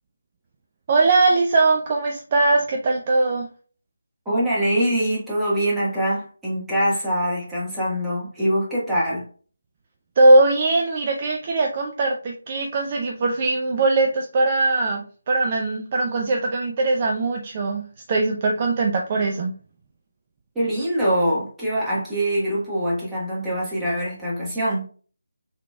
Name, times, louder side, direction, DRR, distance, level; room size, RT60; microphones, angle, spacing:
voice 1, 0.9-3.5 10.2-17.8 18.1-19.5, right 2 dB, 30° right, 0.4 m, -20 dB
voice 2, 4.2-9.3 20.5-24.9, equal, 5° right, 1.3 m, -23 dB
3.7 x 3.6 x 2.2 m
figure-of-eight pair, 160°, 0 cm